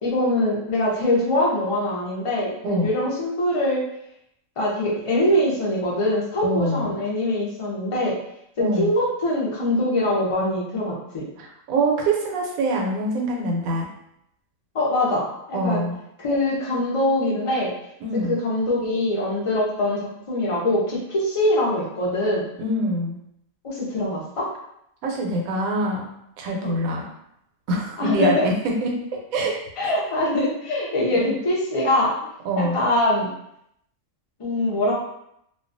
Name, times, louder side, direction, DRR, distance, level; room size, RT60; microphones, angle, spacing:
voice 1, 0.0-3.9 4.6-8.2 8.6-11.3 14.7-15.8 16.2-17.7 18.1-22.4 23.6-24.5 26.6-26.8 28.0-28.5 29.8-32.2 32.6-33.3 34.4-34.9, left 1 dB, 55° left, -5 dB, 0.3 m, -23 dB
voice 2, 6.4-7.0 8.6-9.0 11.4-13.9 15.5-16.0 18.0-18.4 22.6-23.2 25.0-27.1 27.7-28.9 29.3-29.5 29.8-29.9 31.1-31.3 32.4-32.8, right 1 dB, 85° right, 0 dB, 1.0 m, -25 dB
2.4 x 2.2 x 2.5 m, 0.77 s
omnidirectional pair, 1.4 m